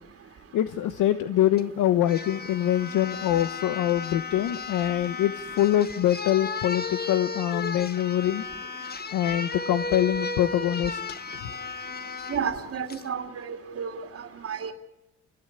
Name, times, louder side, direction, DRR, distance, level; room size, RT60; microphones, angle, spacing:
voice 1, 0.5-8.4 9.1-11.0 11.4-11.5, left 12 dB, 90° left, 11 dB, 1.2 m, -24 dB
sound 1, 1.6-1.7 2.1-12.4 12.9-13.1, left 4 dB, 30° left, 1.6 m, -34 dB
voice 2, 12.3-13.9 14.4-14.7, right 7 dB, 50° right, 3 dB, 2.7 m, -31 dB
29.0 x 19.5 x 10.0 m, 0.91 s
cardioid pair, 90°, 30 cm